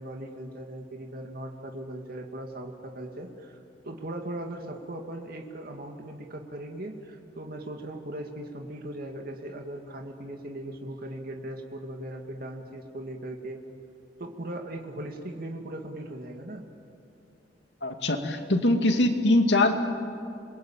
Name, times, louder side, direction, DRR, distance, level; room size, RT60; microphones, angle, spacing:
voice 1, 0.0-3.6 3.8-13.6 14.2-16.6, right 1 dB, 55° right, 2 dB, 2.4 m, -38 dB
voice 2, 17.8-19.8, left 1 dB, 75° left, 5 dB, 2.5 m, -23 dB
28.0 x 22.0 x 8.9 m, 2.7 s
head